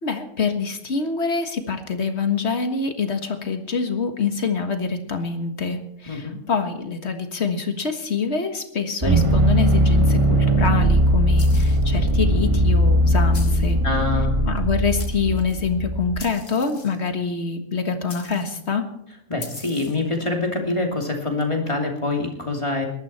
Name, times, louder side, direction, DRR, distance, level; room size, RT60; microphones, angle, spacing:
voice 1, 0.0-13.8 14.4-18.9, left 5 dB, 65° left, 6 dB, 1.9 m, -25 dB
voice 2, 6.1-6.4 13.8-14.4 19.3-22.9, left 3 dB, 25° left, 1 dB, 2.8 m, -25 dB
sound 1, 9.0-16.2, right 1 dB, 30° right, 1.0 m, -19 dB
sound 2, 11.4-11.9 13.3-13.7 14.6-14.7 15.0-15.6 16.2-17.1 18.1-18.6 19.4-20.1, left 4 dB, 85° left, 2.3 m, -41 dB
19.0 x 12.5 x 4.3 m, 0.73 s
omnidirectional pair, 1.2 m